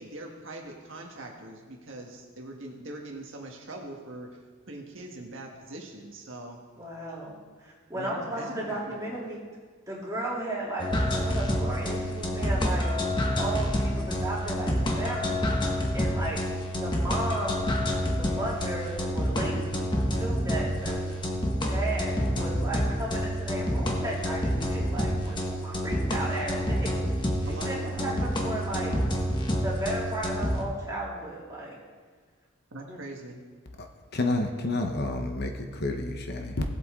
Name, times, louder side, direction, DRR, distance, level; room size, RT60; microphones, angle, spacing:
voice 1, 0.0-4.3 4.7-6.6 7.9-9.1 27.4-29.2 32.7-33.4, right 1 dB, 60° right, 1 dB, 1.5 m, -42 dB
voice 2, 6.8-7.3 7.6-9.4 9.9-15.5 15.9-16.4 16.7-17.6 17.9-19.7 20.1-21.0 21.6-26.9 27.5-28.9 29.6-31.8 32.9-33.0, right 1 dB, 15° right, -6 dB, 3.1 m, -35 dB
sound 1, 10.8-30.6, equal, 20° left, 1.3 m, -28 dB
voice 3, 34.1-36.6, left 2 dB, 50° left, 4 dB, 1.0 m, -29 dB
18.0 x 8.2 x 3.7 m, 1.5 s
head